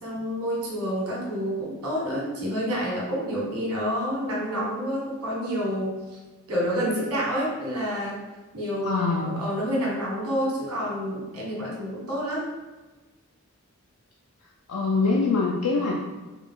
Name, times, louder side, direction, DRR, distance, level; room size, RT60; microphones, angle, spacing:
voice 1, 0.0-6.0 6.5-8.2 8.5-12.5, equal, 85° right, -4 dB, 1.5 m, -28 dB
voice 2, 8.8-9.4 14.7-15.9, left 4 dB, 90° left, -2 dB, 0.5 m, -24 dB
4.6 x 2.3 x 3.7 m, 1.2 s
head